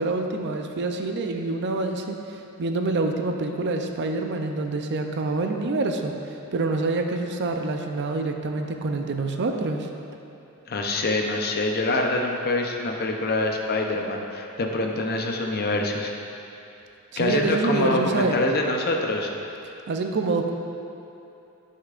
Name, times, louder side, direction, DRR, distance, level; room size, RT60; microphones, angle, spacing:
voice 1, 0.0-2.2 2.6-6.1 6.5-9.9 17.1-18.4 19.9-20.5, right 3 dB, 50° right, 4 dB, 0.5 m, -26 dB
voice 2, 10.7-16.1 17.2-19.3, left 2 dB, 45° left, 1 dB, 0.6 m, -25 dB
11.0 x 6.5 x 2.5 m, 2.8 s
head